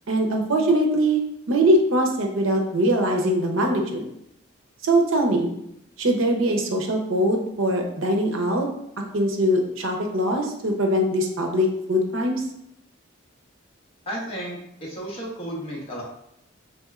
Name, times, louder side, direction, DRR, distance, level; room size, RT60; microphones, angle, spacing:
voice 1, 0.1-1.2 1.5-4.1 4.8-5.5 6.0-8.7 9.1-12.4, right 1 dB, 75° right, 2 dB, 0.7 m, -22 dB
voice 2, 14.1-16.0, equal, 30° left, -4 dB, 1.0 m, -33 dB
4.2 x 3.5 x 2.4 m, 0.76 s
head